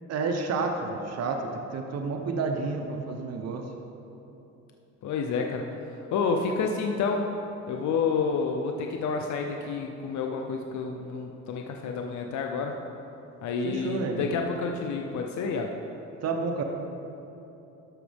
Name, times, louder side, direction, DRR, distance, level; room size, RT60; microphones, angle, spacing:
voice 1, 0.1-3.7 13.6-14.2 16.2-16.6, right 4 dB, 55° right, 3 dB, 0.8 m, -30 dB
voice 2, 5.0-5.6 6.1-7.3 7.7-12.8 13.4-15.7, left 5 dB, 70° left, 2 dB, 0.7 m, -29 dB
12.0 x 6.2 x 3.4 m, 3.0 s
cardioid pair, 90°, 30 cm